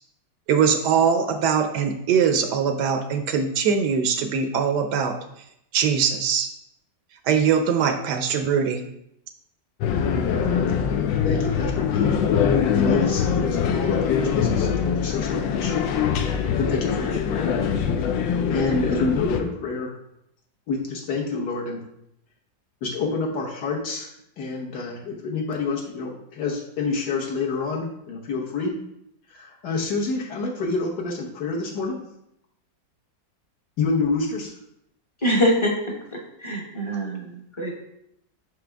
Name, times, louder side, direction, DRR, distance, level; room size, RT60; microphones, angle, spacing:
voice 1, 0.5-5.1 5.7-6.5 7.2-8.8, right 6 dB, 75° right, 7 dB, 1.1 m, -22 dB
sound 1, 9.8-19.4, left 7 dB, 90° left, 1.3 m, -23 dB
voice 2, 11.2-12.1 12.5-15.8 16.6-17.6 18.5-20.0 20.7-21.8 22.8-28.8 29.3-32.0 33.8-34.5, left 3 dB, 65° left, -1 dB, 1.6 m, -28 dB
voice 3, 35.2-35.7 36.1-37.7, equal, 25° left, -1 dB, 0.8 m, -24 dB
5.9 x 5.0 x 3.4 m, 0.78 s
omnidirectional pair, 1.9 m